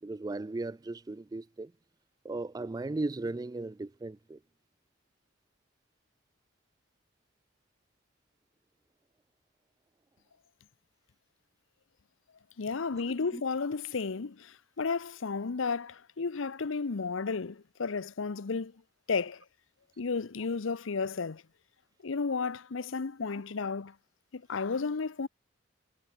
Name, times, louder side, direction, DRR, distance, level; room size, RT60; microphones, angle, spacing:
voice 1, 0.0-1.7 2.2-4.4 13.3-13.4, right 2 dB, 20° right, 0.3 m, -36 dB
voice 2, 12.6-18.7 19.1-19.4 20.0-21.4 22.0-23.9 24.3-25.3, left 4 dB, 80° left, 0.7 m, -33 dB
head